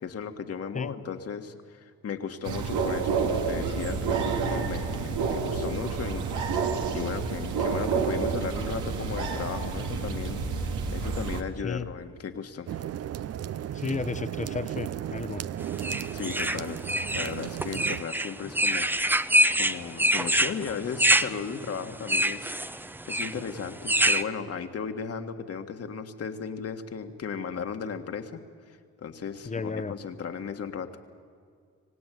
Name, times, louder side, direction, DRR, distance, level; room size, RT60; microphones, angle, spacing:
voice 1, 0.0-6.3 6.9-12.8 16.1-16.8 17.1-28.4 28.7-31.0, left 6 dB, 50° left, 6 dB, 1.8 m, -36 dB
sound 1, 2.4-11.4, right 5 dB, 90° right, 2.1 m, -29 dB
sound 2, 12.7-18.0, right 10 dB, 55° right, 0.6 m, -35 dB
voice 2, 13.7-15.4 29.4-29.9, left 4 dB, 25° left, 12 dB, 1.0 m, -33 dB
sound 3, 15.8-24.2, right 1 dB, 5° right, 0.7 m, -25 dB
25.5 x 17.5 x 9.3 m, 2.1 s
cardioid pair, 90°, 30 cm